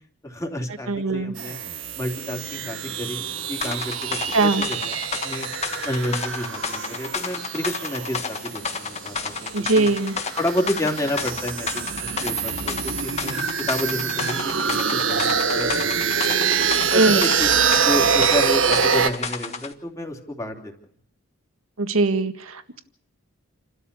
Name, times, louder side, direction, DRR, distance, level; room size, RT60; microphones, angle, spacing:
voice 1, 0.2-1.6 2.0-4.9 5.2-5.5 5.8-9.9 10.4-16.3 16.9-17.5 17.8-20.7, left 1 dB, 15° left, 2 dB, 3.2 m, -30 dB
voice 2, 0.9-1.3 4.3-4.6 9.5-10.2 16.9-17.2 21.8-22.8, right 3 dB, 80° right, 9 dB, 1.8 m, -21 dB
sound 1, 1.4-19.1, right 6 dB, 65° right, 1.4 m, -25 dB
sound 2, 3.6-19.7, left 5 dB, 30° left, 1.5 m, -32 dB
29.5 x 13.0 x 6.9 m, 0.62 s
head